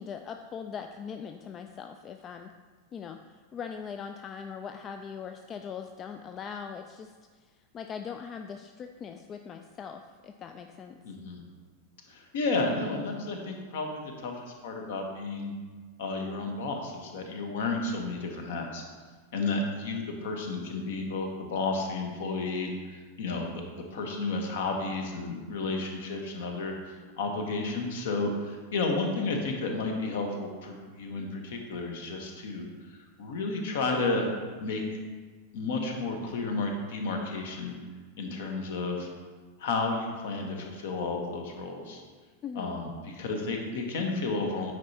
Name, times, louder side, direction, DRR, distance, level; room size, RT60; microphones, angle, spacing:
voice 1, 0.0-2.5 2.9-7.1 7.4-11.0 42.4-42.8, left 7 dB, 30° left, 6 dB, 0.3 m, -41 dB
voice 2, 11.0-11.4 12.1-15.5 16.0-18.8 19.3-22.7 23.2-23.6 23.9-32.7 33.2-34.3 34.6-35.0 35.5-37.7 38.2-39.1 39.6-42.0 42.6-44.7, left 3 dB, 55° left, 3 dB, 1.0 m, -32 dB
9.0 x 4.7 x 2.8 m, 1.4 s
figure-of-eight pair, 90°, 0 cm